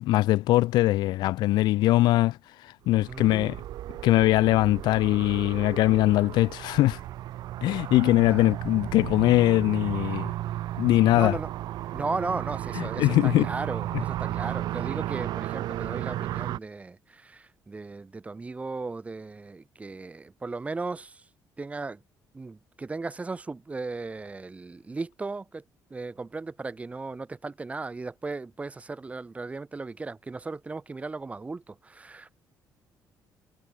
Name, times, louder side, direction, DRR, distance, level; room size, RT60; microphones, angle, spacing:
voice 1, 0.0-2.4 2.6-3.6 4.0-7.0 7.6-10.3 10.8-11.4 12.8-13.5 13.9-14.0, left 16 dB, 85° left, 0.4 m, -22 dB
sound 1, 2.9-16.6, right 14 dB, 70° right, 0.7 m, -34 dB
voice 2, 3.1-3.6 8.3-8.4 10.3-10.5 11.1-11.5 11.9-21.2 21.6-22.0 22.3-25.6 25.9-32.4, right 3 dB, 20° right, 1.7 m, -36 dB
cardioid pair, 135°, 7 cm